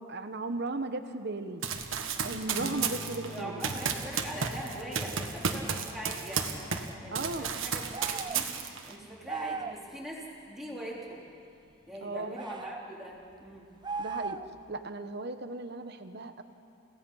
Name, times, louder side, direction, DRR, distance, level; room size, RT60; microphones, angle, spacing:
voice 1, 0.1-1.6 2.2-3.6 7.1-7.5 12.0-12.4 14.0-14.4 14.7-16.4, right 2 dB, 50° right, 9 dB, 1.1 m, -36 dB
Run, 1.6-6.9 7.2-8.9, right 6 dB, 70° right, 1.5 m, -33 dB
sound 1, 2.6-7.4, left 1 dB, 20° left, 1.8 m, -45 dB
voice 2, 3.3-6.5 7.0-8.5 8.9-11.2 11.9-13.7, right 1 dB, ahead, -5 dB, 3.6 m, -42 dB
sound 2, 7.9-8.5 9.3-9.8 12.3-12.8 13.8-14.6, right 4 dB, 20° right, 0.4 m, -37 dB
29.5 x 17.0 x 5.6 m, 2.5 s
head